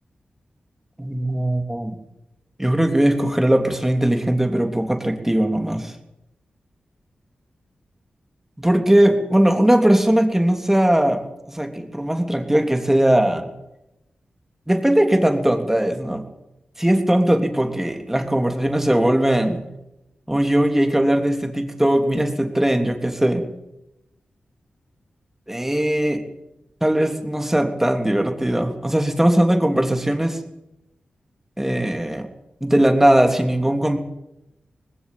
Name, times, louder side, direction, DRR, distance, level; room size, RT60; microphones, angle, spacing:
voice 1, 1.0-2.0 2.6-5.9 8.6-13.5 14.7-16.2 16.8-19.6 20.3-23.4 25.5-26.2 26.8-30.4 31.6-32.3 32.6-34.0, right 1 dB, 10° right, 5 dB, 3.2 m, -19 dB
19.0 x 17.0 x 9.1 m, 0.91 s
cardioid pair, 60°, 3 cm